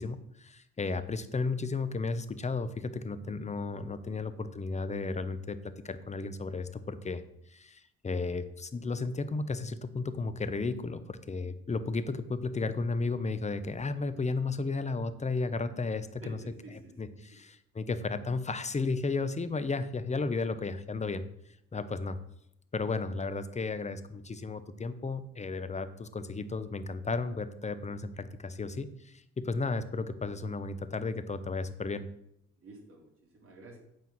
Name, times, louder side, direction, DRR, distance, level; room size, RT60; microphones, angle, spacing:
voice 1, 0.0-16.4 17.0-21.2 21.7-22.2 22.7-32.1, left 3 dB, 25° left, 12 dB, 0.8 m, -34 dB
voice 2, 16.2-17.0 17.3-17.4 32.6-33.8, right 2 dB, 45° right, -2 dB, 3.6 m, -50 dB
9.4 x 4.5 x 7.6 m, 0.77 s
cardioid pair, 90°, 30 cm